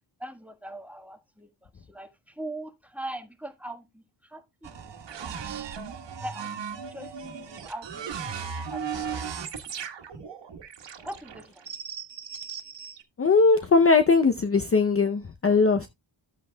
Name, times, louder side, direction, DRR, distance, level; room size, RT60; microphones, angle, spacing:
voice 1, 0.2-5.4 6.2-6.5 6.9-9.2 11.0-11.7, right 1 dB, 5° right, 1.3 m, -41 dB
sound 1, 4.6-13.0, right 7 dB, 65° right, 1.5 m, -37 dB
voice 2, 13.2-15.9, left 4 dB, 30° left, 0.6 m, -20 dB
13.0 x 8.2 x 2.2 m
cardioid pair, 100°, 45 cm